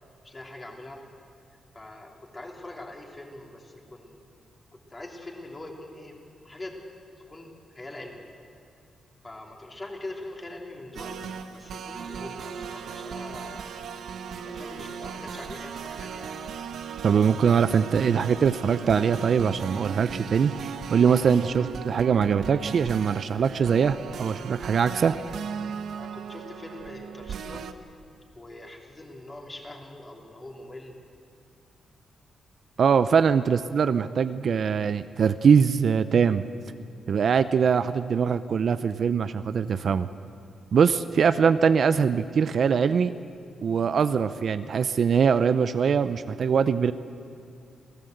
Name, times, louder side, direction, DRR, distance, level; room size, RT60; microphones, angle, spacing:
voice 1, 0.2-1.0 1.7-4.2 4.9-6.2 6.4-6.8 7.3-8.3 9.2-11.2 11.5-13.7 14.4-16.4 26.0-27.7 28.3-30.9, left 2 dB, 20° left, 1 dB, 3.2 m, -42 dB
sound 1, 10.9-27.7, right 6 dB, 75° right, 1.0 m, -37 dB
voice 2, 17.0-25.2 32.8-36.5 37.1-40.1 40.7-43.1 43.6-46.9, right 6 dB, 55° right, 12 dB, 0.6 m, -22 dB
27.5 x 16.5 x 8.0 m, 2.5 s
wide cardioid pair, 135°, 0 cm